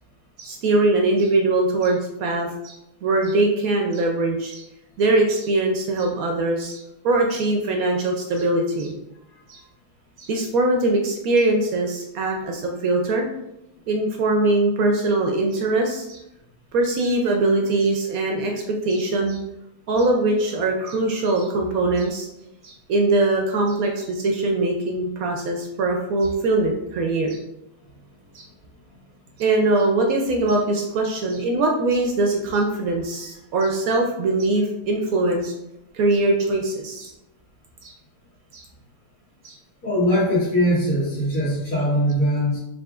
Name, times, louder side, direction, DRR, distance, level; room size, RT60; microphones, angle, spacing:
voice 1, 0.4-2.8 3.0-4.6 5.0-8.9 9.5-9.6 10.2-13.3 13.9-16.2 16.7-19.4 19.9-22.3 22.6-27.4 28.3-28.5 29.4-35.5 35.9-37.1 37.8-37.9 38.5-38.6 39.4-39.6, right 2 dB, 70° right, 1 dB, 0.9 m, -22 dB
voice 2, 39.8-42.6, equal, 60° left, -6 dB, 1.8 m, -21 dB
5.0 x 2.9 x 2.4 m, 0.87 s
omnidirectional pair, 1.7 m